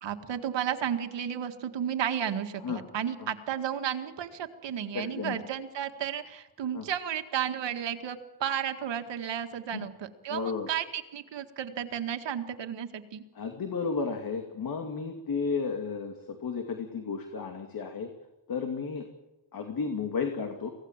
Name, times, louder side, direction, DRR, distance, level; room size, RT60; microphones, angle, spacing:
voice 1, 0.0-13.2, right 9 dB, 65° right, 7 dB, 2.0 m, -33 dB
voice 2, 4.9-5.4 6.7-6.8 9.7-9.9 10.3-10.7 13.4-18.1 18.5-19.1 19.5-20.7, left 5 dB, 45° left, 5 dB, 2.5 m, -33 dB
24.5 x 17.5 x 7.4 m, 1.0 s
cardioid pair, 130°, 47 cm